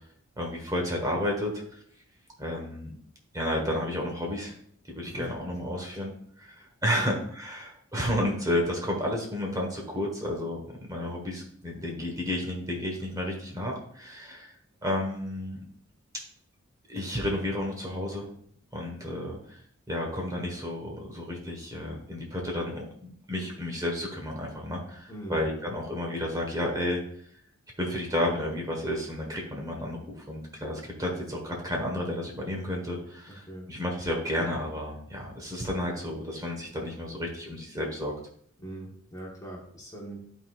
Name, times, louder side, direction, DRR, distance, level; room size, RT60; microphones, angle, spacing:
voice 1, 0.4-1.6 2.4-2.9 3.3-4.5 4.9-6.1 6.4-14.5 14.8-15.6 16.9-18.3 18.7-19.6 19.9-27.0 27.8-38.1, left 1 dB, 15° right, 0 dB, 1.3 m, -31 dB
voice 2, 25.1-25.4 33.3-33.7 38.6-40.2, right 1 dB, 15° left, -2 dB, 1.3 m, -41 dB
12.0 x 4.0 x 2.4 m, 0.63 s
head